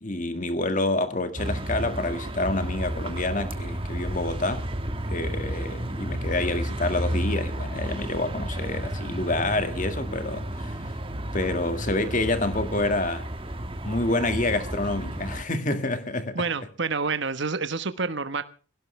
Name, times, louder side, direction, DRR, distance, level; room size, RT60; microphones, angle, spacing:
voice 1, 0.0-4.7 5.1-10.8 11.3-13.3 13.8-16.4, left 2 dB, 35° left, 1.9 m, -28 dB
sound 1, 1.4-15.4, right 1 dB, 25° right, 1.5 m, -32 dB
voice 2, 16.3-18.4, right 4 dB, 55° right, 1.2 m, -28 dB
23.0 x 17.0 x 3.3 m
head